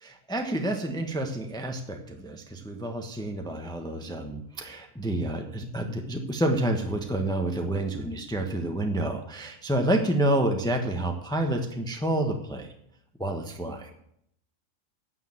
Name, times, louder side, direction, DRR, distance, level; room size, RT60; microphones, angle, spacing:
voice 1, 0.0-12.7 13.2-13.9, right 1 dB, 5° left, 4 dB, 1.0 m, -29 dB
9.8 x 9.5 x 7.7 m, 0.73 s
omnidirectional pair, 1.3 m